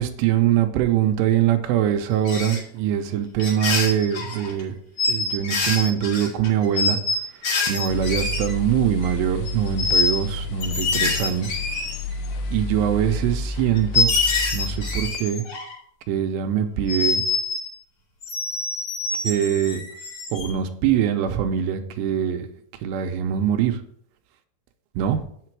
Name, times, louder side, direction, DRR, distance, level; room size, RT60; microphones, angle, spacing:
voice 1, 0.0-4.8 5.1-7.0 7.7-11.6 12.5-14.1 14.5-15.4 16.1-17.2 19.2-19.8 20.3-22.5 22.8-23.8 25.0-25.2, right 10 dB, 85° right, 6 dB, 2.9 m, -23 dB
sound 1, 2.3-2.6 3.4-4.6 5.0-8.7 9.0-9.1 9.5-10.2 10.6-12.3 13.1-13.2 13.7-15.7 16.9-17.7 18.2-20.5, left 4 dB, 45° left, 2.6 m, -25 dB
sound 2, 7.9-15.1, left 2 dB, 80° left, 2.8 m, -31 dB
8.3 x 6.8 x 4.7 m, 0.64 s
omnidirectional pair, 4.8 m